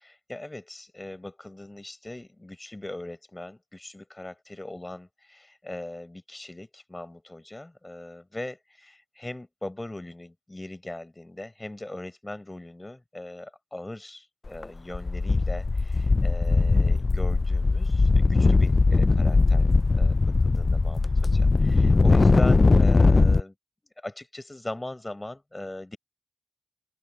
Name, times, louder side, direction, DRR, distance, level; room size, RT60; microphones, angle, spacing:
voice 1, 0.0-23.5 24.0-26.0, left 1 dB, 40° left, 5.6 m, -40 dB
sound 1, 14.5-14.6 14.9-23.4, left 3 dB, 85° left, 0.3 m, -20 dB
open air
wide cardioid pair, 45°, 0 cm